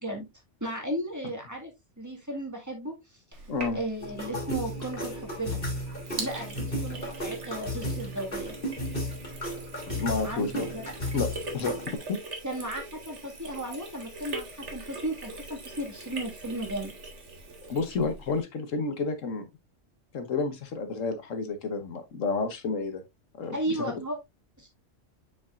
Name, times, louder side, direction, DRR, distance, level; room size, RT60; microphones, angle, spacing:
voice 1, 0.6-1.7 2.0-3.4 3.7-5.6 6.2-8.6 10.2-10.9 12.4-16.9 23.5-24.2 24.6-24.7, right 1 dB, 15° right, 1.8 m, -35 dB
Sink (filling or washing), 3.3-18.4, right 2 dB, 70° right, 1.9 m, -42 dB
voice 2, 3.5-3.8 9.9-10.7 11.1-11.3 11.5-11.8 12.1-12.2 17.7-19.4 20.1-23.0 23.4-23.8, left 4 dB, 85° left, 1.5 m, -30 dB
sound 1, 4.0-12.0, left 1 dB, 45° left, 2.9 m, -34 dB
7.1 x 6.0 x 2.4 m
omnidirectional pair, 1.3 m